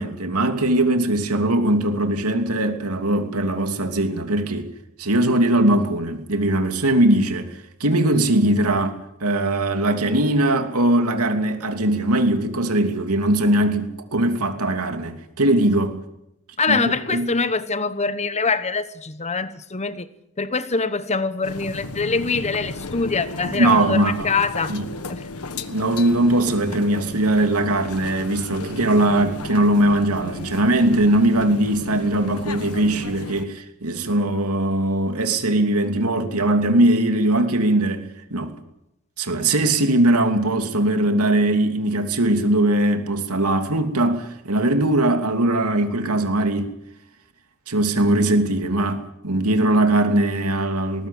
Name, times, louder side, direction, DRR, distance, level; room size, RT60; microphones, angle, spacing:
voice 1, 0.0-4.7 5.0-16.0 16.7-17.3 23.4-24.3 24.7-24.9 25.5-38.6 39.2-46.7 47.7-51.1, right 1 dB, 80° right, 2.8 m, -20 dB
voice 2, 16.6-20.1 20.4-24.8 25.1-25.3, left 4 dB, 30° left, 1.1 m, -24 dB
sound 1, 21.4-33.4, left 2 dB, 75° left, 1.5 m, -35 dB
20.0 x 18.5 x 8.7 m
head